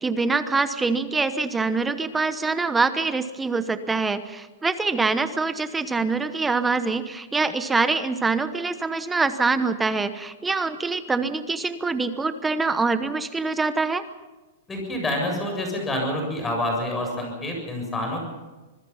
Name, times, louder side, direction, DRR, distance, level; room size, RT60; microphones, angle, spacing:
voice 1, 0.0-14.0, right 4 dB, 10° right, 11 dB, 1.0 m, -24 dB
voice 2, 14.7-18.2, left 1 dB, 10° left, 2 dB, 7.4 m, -27 dB
25.5 x 21.0 x 5.8 m, 1.2 s
supercardioid pair, 160°, 0 cm